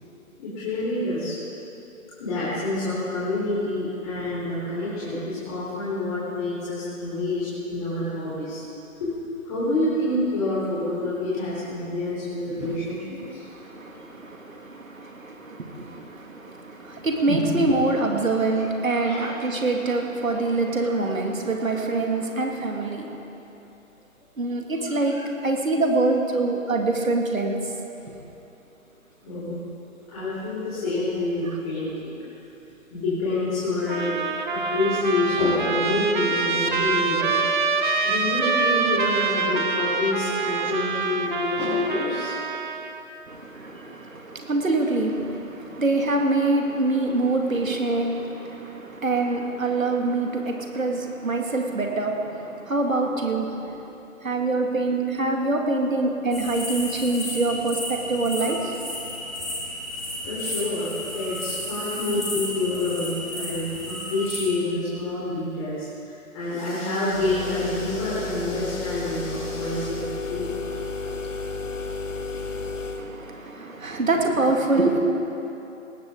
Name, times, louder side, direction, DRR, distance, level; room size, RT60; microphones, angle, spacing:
voice 1, 0.4-1.4 2.2-8.6 9.0-9.1 9.4-13.4 19.0-19.2 29.2-29.6 30.1-32.1 32.9-34.1 34.5-37.4 38.0-42.3 43.5-43.9 45.5-45.8 60.2-70.8, left 2 dB, 25° left, -10 dB, 3.8 m, -27 dB
voice 2, 13.2-23.2 24.4-27.6 43.3-53.8 54.2-58.7 73.0-75.0, right 2 dB, 70° right, 2 dB, 2.2 m, -25 dB
Trumpet, 33.9-43.0, right 4 dB, 35° right, 0.7 m, -25 dB
sound 1, 56.3-64.5, left 1 dB, ahead, 1.2 m, -33 dB
sound 2, 67.1-73.1, left 3 dB, 65° left, 1.4 m, -32 dB
18.5 x 15.5 x 3.8 m, 3.0 s
figure-of-eight pair, 145°, 42 cm